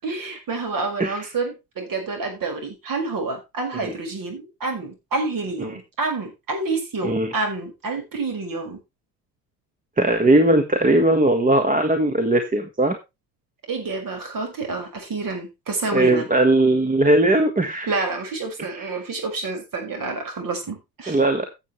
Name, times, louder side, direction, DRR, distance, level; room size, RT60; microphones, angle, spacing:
voice 1, 0.0-8.8 13.7-16.3 17.9-21.2, right 3 dB, 40° right, 5 dB, 5.8 m, -28 dB
voice 2, 10.0-13.0 15.9-17.9 18.7-18.9 21.1-21.5, right 1 dB, 15° right, 7 dB, 1.5 m, -19 dB
15.5 x 7.5 x 3.2 m, 0.24 s
hypercardioid pair, 70°, 49 cm